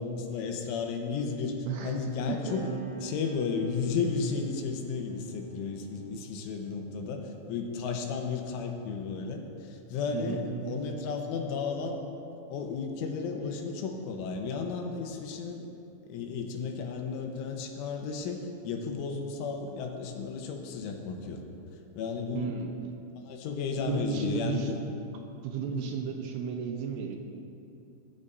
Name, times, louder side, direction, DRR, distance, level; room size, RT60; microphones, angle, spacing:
voice 1, 0.0-1.6 1.8-12.0 12.5-15.7 16.1-21.4 21.9-22.5 23.2-24.8 25.7-25.9, left 5 dB, 85° left, 3 dB, 3.7 m, -33 dB
voice 2, 1.7-2.0 2.3-2.4 10.1-10.8 22.3-22.7 23.9-24.7 25.4-27.2, right 6 dB, 75° right, 3 dB, 2.7 m, -33 dB
sound 1, 2.5-9.4 10.4-12.2, right 7 dB, 60° right, 2.9 m, -47 dB
20.5 x 13.5 x 2.7 m, 2.7 s
omnidirectional pair, 5.4 m